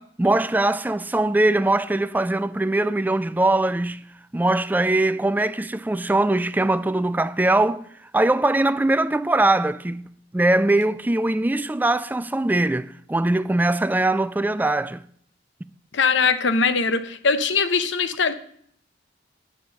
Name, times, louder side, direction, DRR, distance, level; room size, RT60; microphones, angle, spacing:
voice 1, 0.2-4.0 4.3-7.8 8.1-10.1 10.3-15.0, right 2 dB, 10° right, 0.3 m, -21 dB
voice 2, 15.9-18.3, left 5 dB, 85° left, 0.8 m, -21 dB
8.4 x 7.1 x 6.4 m
head